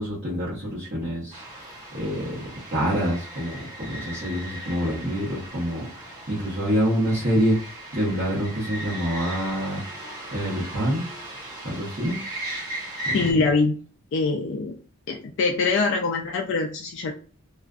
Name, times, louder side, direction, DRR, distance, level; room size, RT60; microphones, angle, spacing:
voice 1, 0.0-1.4 1.9-2.3 2.7-7.6 7.9-9.8 10.3-11.1 11.6-12.2 13.1-13.2, equal, 50° right, -9 dB, 0.8 m, -26 dB
sound 1, 1.3-13.3, right 1 dB, 20° right, 0.9 m, -37 dB
voice 2, 13.1-13.7 14.1-14.7 15.1-17.1, left 4 dB, 55° left, 2 dB, 0.3 m, -23 dB
2.4 x 2.2 x 2.3 m, 0.39 s
head